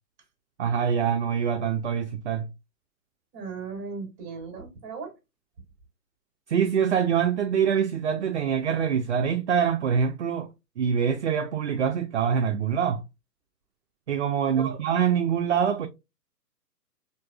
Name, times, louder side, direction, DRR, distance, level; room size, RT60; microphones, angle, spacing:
voice 1, 0.6-2.5 6.5-10.5 10.8-13.0 14.1-15.9, right 7 dB, 50° right, 0.4 m, -25 dB
voice 2, 3.3-5.1 14.6-14.8, right 5 dB, 20° right, 1.2 m, -37 dB
4.5 x 2.6 x 2.3 m
figure-of-eight pair, 130°, 48 cm